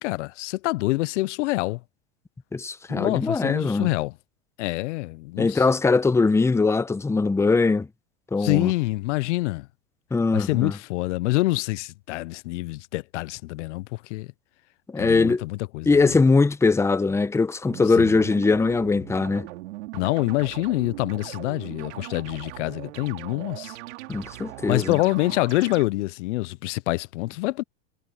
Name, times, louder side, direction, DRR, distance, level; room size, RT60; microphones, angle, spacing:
voice 1, 0.0-1.8 2.9-4.1 4.6-5.6 8.4-9.7 10.3-14.3 15.0-16.1 18.0-18.2 19.9-23.8 24.7-27.6, left 20 dB, 75° left, 0.5 m, -26 dB
voice 2, 2.5-3.9 5.4-7.9 8.3-8.7 10.1-10.7 14.9-15.4 15.9-19.5 24.1-25.0, left 4 dB, 10° left, 0.8 m, -21 dB
sound 1, 17.7-25.8, right 19 dB, 75° right, 2.4 m, -40 dB
supercardioid pair, 110°, 36 cm